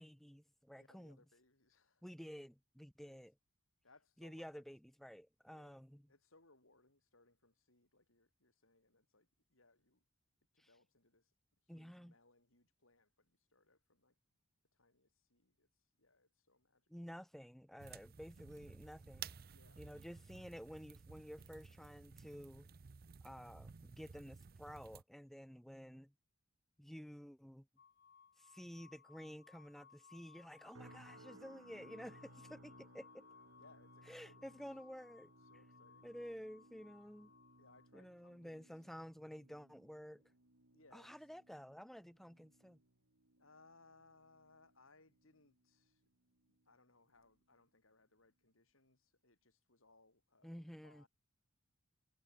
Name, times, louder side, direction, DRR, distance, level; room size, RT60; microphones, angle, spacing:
voice 1, 0.0-1.2 2.0-3.3 4.2-6.1 10.6-10.7 11.7-12.1 16.9-19.4 19.8-22.8 23.2-26.1 26.8-27.7 28.4-33.2 34.1-35.3 36.0-37.3 37.9-40.2 40.9-42.8 50.4-51.0, equal, ahead, 0.6 m, -52 dB
voice 2, 0.8-2.1 3.0-3.2 3.8-4.6 5.5-5.8 6.1-10.0 10.5-11.3 11.6-14.2 14.7-15.7 16.0-17.1 19.5-19.8 32.1-33.1 33.6-34.6 35.4-36.1 37.6-38.7 40.7-41.3 43.4-46.1 46.7-51.1, left 3 dB, 70° left, 7.2 m, -69 dB
sound 1, 17.8-25.0, right 6 dB, 45° right, 0.5 m, -55 dB
sound 2, 27.8-37.9, left 6 dB, 50° left, 1.1 m, -64 dB
sound 3, 30.7-46.0 46.3-46.7 47.2-47.4, right 2 dB, 75° right, 3.0 m, -64 dB
head